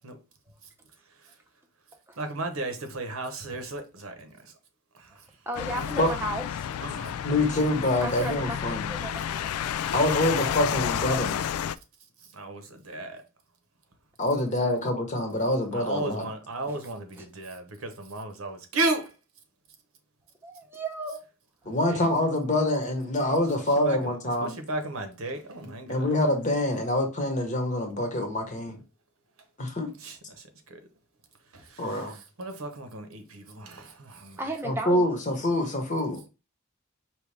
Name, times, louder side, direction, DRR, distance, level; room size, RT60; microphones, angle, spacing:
voice 1, 2.2-4.5 4.9-5.2 5.8-5.9 6.8-7.4 12.3-13.2 15.7-19.1 21.9-22.0 23.8-26.1 30.0-30.8 31.5-34.4, right 2 dB, 70° right, 0.9 m, -35 dB
sound 1, 5.5-11.7, left 9 dB, 85° left, 0.3 m, -31 dB
voice 2, 5.5-6.7 8.0-9.7 16.7-16.8 17.2-17.3 20.4-21.2 31.8-31.9 34.4-35.0, right 1 dB, 10° right, 0.9 m, -35 dB
voice 3, 7.2-8.9 9.9-11.4 14.2-16.2 21.7-24.5 25.9-28.8 29.6-29.9 31.8-32.2 34.6-36.2, left 1 dB, 35° left, 1.0 m, -26 dB
5.2 x 2.9 x 3.3 m
head